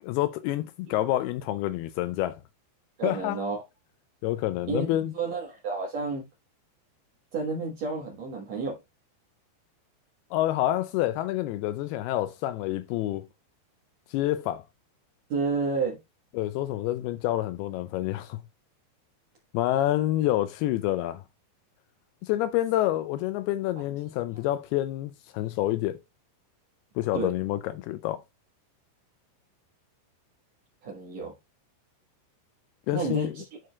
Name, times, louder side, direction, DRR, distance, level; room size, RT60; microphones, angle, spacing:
voice 1, 0.0-2.4 3.0-3.4 4.2-5.1 10.3-13.3 14.1-14.6 16.3-18.4 19.5-21.2 22.2-26.0 27.0-28.2 32.9-33.3, left 14 dB, 90° left, 2.2 m, -28 dB
voice 2, 3.0-3.6 4.7-6.3 7.3-8.8 15.3-16.0 27.1-27.3 30.8-31.3 32.9-33.5, right 4 dB, 65° right, 1.7 m, -30 dB
11.0 x 4.6 x 2.3 m
omnidirectional pair, 5.0 m